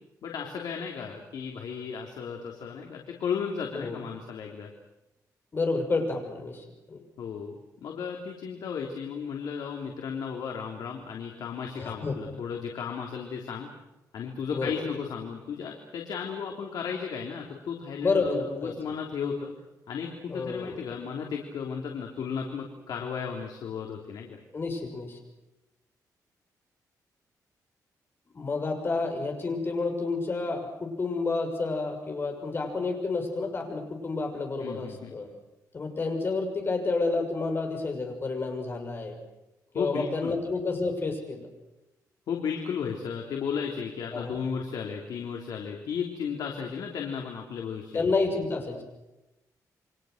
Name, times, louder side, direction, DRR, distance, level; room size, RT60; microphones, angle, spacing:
voice 1, 0.2-4.7 7.2-13.7 14.1-19.5 19.9-24.4 34.6-35.2 39.7-40.3 42.3-48.0, left 6 dB, 75° left, 1 dB, 3.4 m, -34 dB
voice 2, 5.5-7.0 11.8-12.2 14.5-14.8 18.0-19.0 20.3-20.8 24.5-25.2 28.3-35.3 35.7-39.2 39.7-41.5 44.1-44.4 47.9-48.8, left 3 dB, 35° left, 4 dB, 6.5 m, -30 dB
29.5 x 24.5 x 6.7 m, 0.96 s
wide cardioid pair, 140°, 7 cm